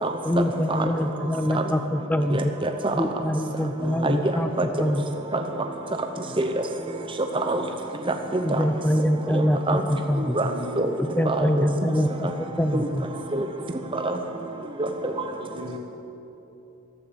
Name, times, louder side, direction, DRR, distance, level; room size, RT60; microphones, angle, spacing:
voice 1, 0.2-2.6 3.0-4.5 4.8-5.0 8.4-10.4 11.0-12.3 12.6-13.1, equal, 5° left, 9 dB, 0.4 m, -24 dB
voice 2, 2.3-3.0 4.0-4.2 4.6-4.7 5.3-5.4 6.4-6.5 7.3-7.6 8.1-8.6 9.3-9.8 10.3-10.5 10.8-10.9 11.3-11.7 12.7-12.9 13.3-13.4 13.9-14.2 14.8-15.1, right 2 dB, 25° right, 5 dB, 0.7 m, -25 dB
voice 3, 3.8-4.7 6.2-6.3 7.4-7.6 10.4-10.9 12.4-12.9 15.5-15.8, equal, 85° right, -1 dB, 3.0 m, -38 dB
14.5 x 13.0 x 7.0 m, 2.9 s
head